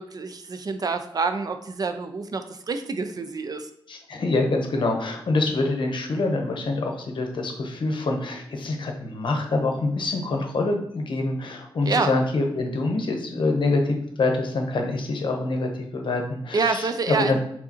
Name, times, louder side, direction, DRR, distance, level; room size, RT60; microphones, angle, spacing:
voice 1, 0.0-3.7 11.9-12.1 16.5-17.4, right 4 dB, 45° right, 8 dB, 0.4 m, -27 dB
voice 2, 3.9-17.4, left 2 dB, 60° left, 3 dB, 0.9 m, -25 dB
4.8 x 3.6 x 2.9 m, 0.74 s
wide cardioid pair, 120°, 9 cm